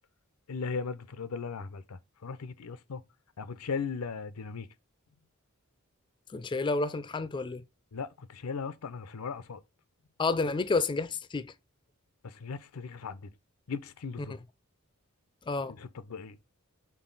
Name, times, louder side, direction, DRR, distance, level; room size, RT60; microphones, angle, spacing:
voice 1, 0.5-3.0 3.4-4.7 7.9-9.6 12.2-13.3 13.7-14.4 15.7-16.4, left 5 dB, 85° left, 0.6 m, -38 dB
voice 2, 6.3-7.6 10.2-11.5 15.5-15.7, left 3 dB, 20° left, 0.3 m, -30 dB
6.2 x 4.0 x 3.8 m
head